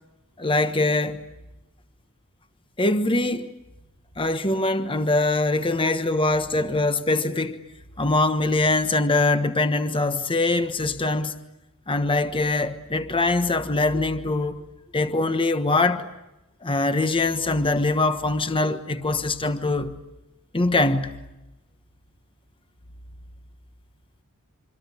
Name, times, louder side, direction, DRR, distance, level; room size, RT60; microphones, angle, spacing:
voice 1, 0.4-1.2 2.8-3.5 4.2-7.6 8.0-11.4 11.9-14.6 14.9-16.1 16.6-20.0 20.5-21.2, left 2 dB, 25° left, 1.3 m, -23 dB
26.5 x 25.0 x 8.5 m
head